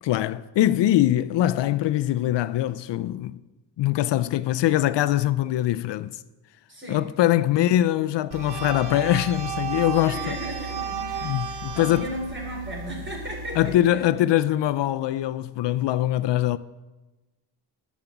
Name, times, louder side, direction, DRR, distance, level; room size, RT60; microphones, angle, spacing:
voice 1, 0.0-3.4 3.8-6.2 6.9-10.4 11.2-12.1 13.6-16.6, left 13 dB, 75° left, 0.5 m, -23 dB
voice 2, 6.7-7.0 7.5-7.7 10.0-14.1, right 1 dB, 25° right, 4.2 m, -36 dB
sound 1, 8.3-13.7, right 5 dB, 60° right, 1.2 m, -33 dB
10.5 x 7.3 x 7.9 m
cardioid pair, 120°, 43 cm